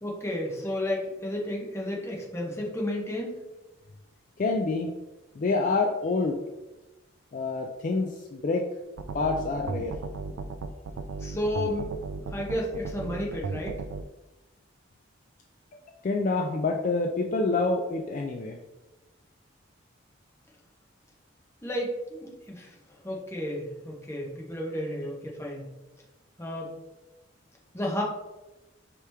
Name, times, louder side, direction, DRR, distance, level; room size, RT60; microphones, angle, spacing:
voice 1, 0.0-3.4 11.2-11.9 12.3-13.8 21.6-25.7 26.4-26.7 27.7-28.0, left 1 dB, 15° left, -2 dB, 0.8 m, -32 dB
voice 2, 4.4-4.9 5.3-6.4 7.3-8.7 9.1-10.0 15.7-18.6, left 3 dB, 40° left, 1 dB, 0.3 m, -27 dB
sound 1, 9.0-14.0, right 4 dB, 85° right, 0.4 m, -35 dB
4.8 x 2.9 x 3.4 m, 1.0 s
head